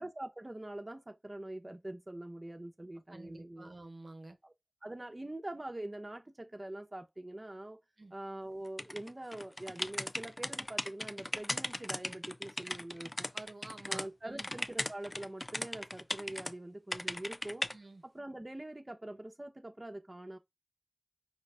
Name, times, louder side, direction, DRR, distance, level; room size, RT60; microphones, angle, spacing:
voice 1, 0.0-3.7 4.4-4.5 4.8-7.8 8.1-13.3 13.9-17.7 18.0-20.4, right 1 dB, 30° right, 0.7 m, -44 dB
voice 2, 3.1-4.4 8.0-8.1 13.3-14.5 17.7-18.0, right 2 dB, 65° right, 0.7 m, -50 dB
sound 1, 8.8-14.1 14.4-16.5 16.9-17.7, left 1 dB, 35° left, 0.4 m, -38 dB
5.1 x 2.4 x 3.3 m
wide cardioid pair, 45°, 0 cm